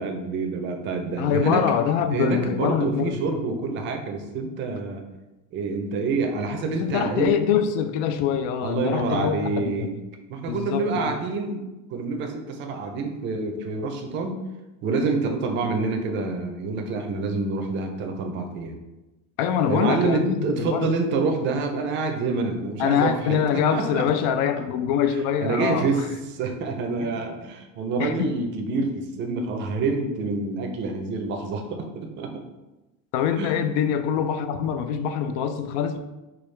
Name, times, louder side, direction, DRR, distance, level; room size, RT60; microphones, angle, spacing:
voice 1, 0.0-1.7 2.1-5.0 5.5-7.3 8.6-9.9 10.3-11.6 11.9-14.4 14.8-18.7 19.7-23.4 23.7-24.0 25.4-32.4 33.4-33.6, right 3 dB, 30° right, 3 dB, 0.4 m, -27 dB
voice 2, 1.2-3.2 6.8-9.9 10.5-10.8 19.4-20.9 22.8-25.9 27.0-27.2 28.0-28.1 33.1-36.0, left 8 dB, 80° left, 9 dB, 0.5 m, -24 dB
4.8 x 2.3 x 3.1 m, 1.0 s
cardioid pair, 170°, 37 cm